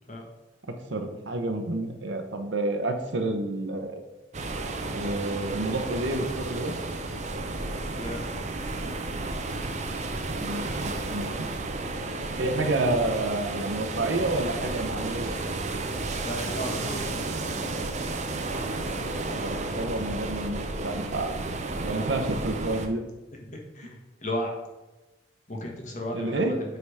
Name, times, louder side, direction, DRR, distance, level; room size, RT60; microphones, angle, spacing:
voice 1, 0.7-4.0 4.9-6.8 10.4-11.5 12.4-15.4 19.3-21.3 21.8-23.0 26.1-26.6, right 2 dB, 75° right, 6 dB, 0.8 m, -29 dB
sound 1, 4.3-22.9, right 2 dB, 35° right, 0.6 m, -32 dB
voice 2, 16.2-17.1 23.5-24.5 25.5-26.5, left 1 dB, 40° left, 1 dB, 1.2 m, -34 dB
7.9 x 3.5 x 4.8 m, 1.1 s
head